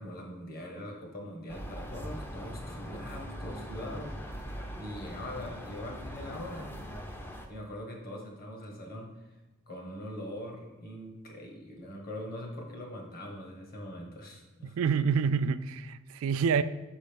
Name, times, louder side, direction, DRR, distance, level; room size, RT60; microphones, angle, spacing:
voice 1, 0.0-6.8 7.5-9.1 9.7-14.8, left 1 dB, 45° left, 1 dB, 1.3 m, -42 dB
sound 1, 1.5-7.5, equal, 10° left, 0.5 m, -41 dB
voice 2, 14.6-16.6, right 6 dB, 80° right, 13 dB, 0.3 m, -27 dB
5.4 x 5.1 x 5.3 m, 1.1 s
head